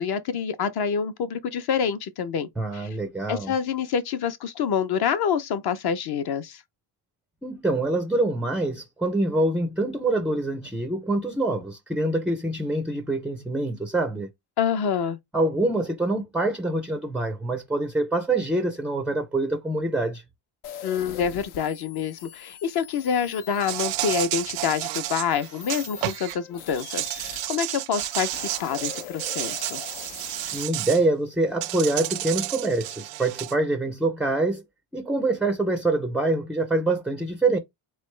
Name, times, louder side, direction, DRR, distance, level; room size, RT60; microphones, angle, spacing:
voice 1, 0.0-2.9 3.3-6.6 14.6-15.2 20.8-29.8, left 7 dB, 50° left, 0.6 m, -27 dB
voice 2, 2.6-3.5 7.4-14.3 15.3-20.2 30.5-34.6 34.9-37.6, right 2 dB, 5° right, 0.3 m, -25 dB
sound 1, 20.6-27.5 27.9-30.6, left 9 dB, 85° left, 0.9 m, -42 dB
Insect, 23.6-26.4 26.7-31.0 31.6-33.5, right 17 dB, 75° right, 0.5 m, -31 dB
3.8 x 3.2 x 3.1 m
cardioid pair, 130°, 48 cm